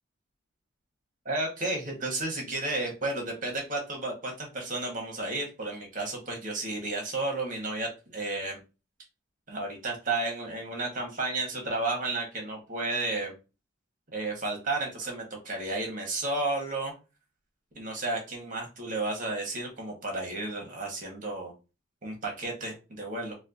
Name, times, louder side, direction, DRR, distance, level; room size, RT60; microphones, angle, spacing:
voice 1, 1.2-8.6 9.5-13.3 14.1-16.9 17.7-21.5 22.0-23.4, right 2 dB, 40° right, 1 dB, 1.2 m, -32 dB
4.2 x 2.3 x 2.5 m, 0.29 s
head